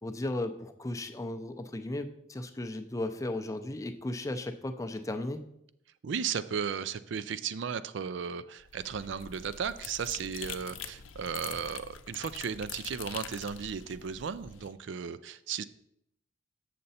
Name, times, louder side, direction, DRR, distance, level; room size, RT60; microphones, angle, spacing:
voice 1, 0.0-5.4, left 1 dB, 15° left, 7 dB, 0.5 m, -35 dB
voice 2, 6.0-15.6, right 7 dB, 65° right, 14 dB, 0.4 m, -35 dB
sound 1, 8.6-14.7, left 8 dB, 80° left, 0.6 m, -44 dB
7.7 x 6.7 x 4.1 m, 0.76 s
head